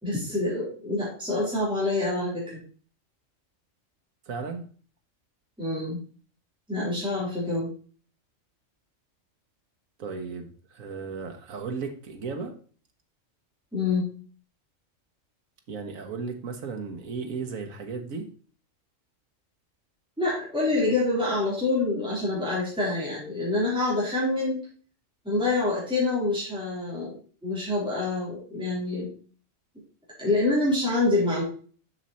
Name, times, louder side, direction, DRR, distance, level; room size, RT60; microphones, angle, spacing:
voice 1, 0.0-2.6 5.6-6.0 6.7-7.7 13.7-14.1 20.2-24.6 25.2-29.1 30.2-31.4, left 2 dB, 5° right, -7 dB, 3.8 m, -26 dB
voice 2, 4.3-4.7 10.0-12.5 15.7-18.3, right 5 dB, 90° right, 4 dB, 1.5 m, -35 dB
7.5 x 6.3 x 4.2 m, 0.41 s
omnidirectional pair, 1.4 m